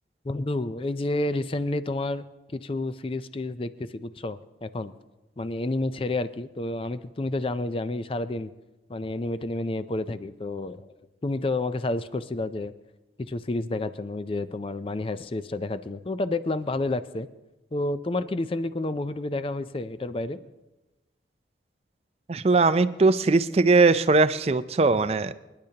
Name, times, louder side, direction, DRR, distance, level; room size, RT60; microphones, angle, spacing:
voice 1, 0.2-2.3 2.5-4.9 5.4-8.5 8.9-10.9 11.2-12.7 13.2-17.3 17.7-20.4, left 2 dB, 30° left, 13 dB, 0.4 m, -30 dB
voice 2, 22.3-25.3, right 3 dB, 35° right, 13 dB, 0.4 m, -20 dB
27.0 x 10.5 x 2.9 m, 1.1 s
head